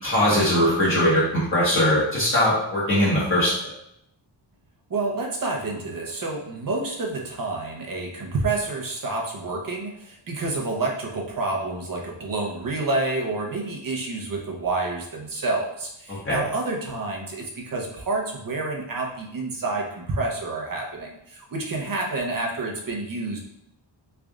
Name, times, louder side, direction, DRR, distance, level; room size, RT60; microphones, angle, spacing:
voice 1, 0.0-1.2 1.5-3.7 16.2-16.4, left 1 dB, 30° left, -9 dB, 1.2 m, -20 dB
voice 2, 4.9-23.4, right 3 dB, 50° right, 0 dB, 0.7 m, -29 dB
3.3 x 2.5 x 3.6 m, 0.76 s
wide cardioid pair, 150°, 45 cm